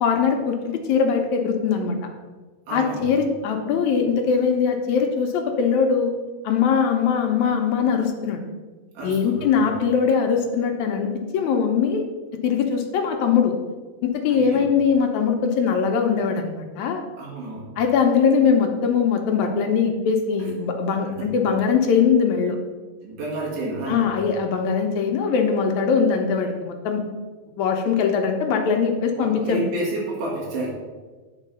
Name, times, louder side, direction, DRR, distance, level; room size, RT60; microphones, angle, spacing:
voice 1, 0.0-2.0 2.7-6.1 6.4-8.4 9.0-12.0 12.4-13.5 14.0-17.0 17.8-22.6 23.9-27.0 27.6-29.6, left 6 dB, 75° left, 3 dB, 2.1 m, -21 dB
voice 2, 2.7-3.2 9.0-9.7 14.3-14.7 17.2-17.7 21.2-21.3 23.0-24.1 29.2-30.7, right 2 dB, 80° right, -5 dB, 3.5 m, -30 dB
10.0 x 4.6 x 5.4 m, 1.3 s
omnidirectional pair, 3.5 m